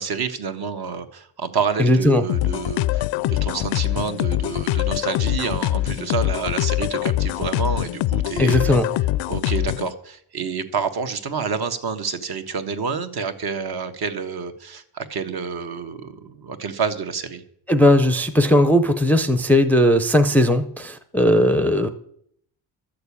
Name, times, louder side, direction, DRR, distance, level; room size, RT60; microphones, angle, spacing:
voice 1, 0.0-8.8 9.3-17.4, right 6 dB, 50° right, 7 dB, 1.4 m, -28 dB
voice 2, 1.8-2.2 8.4-8.9 17.7-21.9, left 1 dB, 5° left, 8 dB, 0.5 m, -17 dB
sound 1, 2.3-9.9, left 16 dB, 70° left, 0.5 m, -23 dB
13.0 x 6.8 x 8.4 m, 0.68 s
cardioid pair, 145°, 47 cm